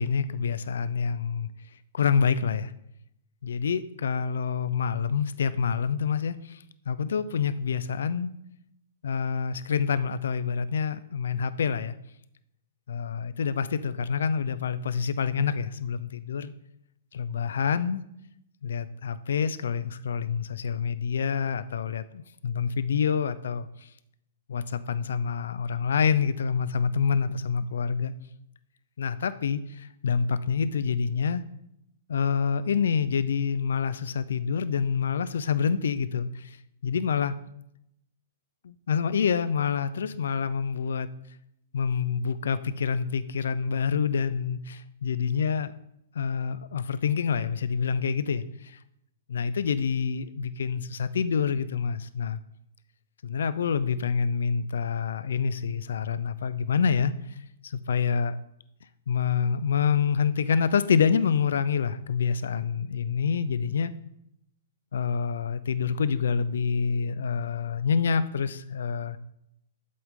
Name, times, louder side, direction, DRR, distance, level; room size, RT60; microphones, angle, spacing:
voice 1, 0.0-1.5 1.9-2.7 3.4-8.3 9.0-12.0 12.9-16.5 17.1-18.0 18.6-23.7 24.5-28.1 29.0-31.4 32.1-36.6 36.8-37.3 38.6-41.1 41.7-45.7 46.1-48.8 49.3-52.4 53.2-57.1 57.6-58.4 59.1-63.9 64.9-69.2, left 6 dB, 75° left, 14 dB, 0.6 m, -27 dB
11.5 x 7.7 x 3.8 m, 0.78 s
hypercardioid pair, 175°, 0 cm